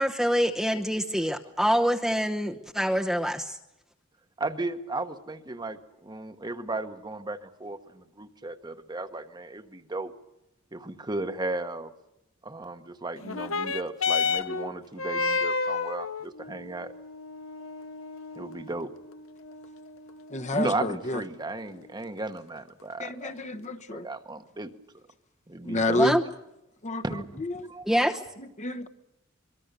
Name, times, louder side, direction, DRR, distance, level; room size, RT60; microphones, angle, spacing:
voice 1, 0.0-3.6 26.0-26.2 27.9-28.2, equal, ahead, 2 dB, 0.9 m, -25 dB
voice 2, 4.4-10.1 10.7-11.9 12.4-16.9 18.4-18.9 20.5-24.7 25.5-26.0 27.0-27.3 27.7-27.9, right 2 dB, 20° right, 8 dB, 1.2 m, -35 dB
sound 1, 13.2-22.2 23.0-23.1, left 4 dB, 85° left, 1.1 m, -32 dB
voice 3, 20.3-21.2 23.0-24.1 25.6-26.2 26.8-27.7 28.4-28.9, left 1 dB, 35° left, 7 dB, 1.1 m, -29 dB
24.0 x 23.5 x 6.8 m, 0.88 s
head